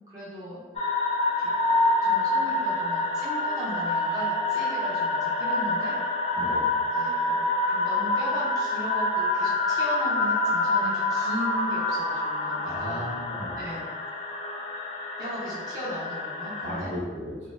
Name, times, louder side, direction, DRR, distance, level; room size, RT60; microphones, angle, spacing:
voice 1, 0.1-0.6 1.4-1.5 2.0-6.0 6.9-13.1 13.5-13.8 15.2-16.9, equal, 20° right, -9 dB, 0.7 m, -37 dB
sound 1, 0.8-16.8, left 2 dB, 35° left, 0.3 m, -27 dB
voice 2, 12.6-13.6 16.6-17.5, equal, 85° right, -6 dB, 0.9 m, -35 dB
2.7 x 2.1 x 3.3 m, 1.4 s
head